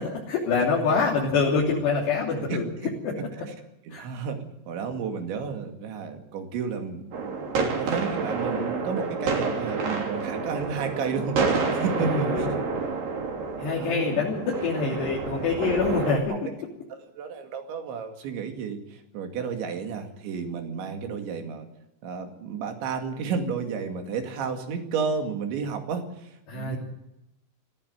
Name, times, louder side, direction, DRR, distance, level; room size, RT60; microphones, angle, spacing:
voice 1, 0.0-2.6 3.2-3.3 3.9-4.0 12.0-12.5 13.6-16.5 26.5-26.8, left 4 dB, 70° left, -3 dB, 5.1 m, -25 dB
voice 2, 3.2-3.5 3.9-12.6 13.8-14.2 16.3-16.5 16.9-21.7 22.0-26.8, right 5 dB, 85° right, 5 dB, 4.7 m, -32 dB
sound 1, 7.1-16.2, right 4 dB, 55° right, 4.7 m, -29 dB
21.5 x 15.0 x 8.1 m, 0.86 s
omnidirectional pair, 5.1 m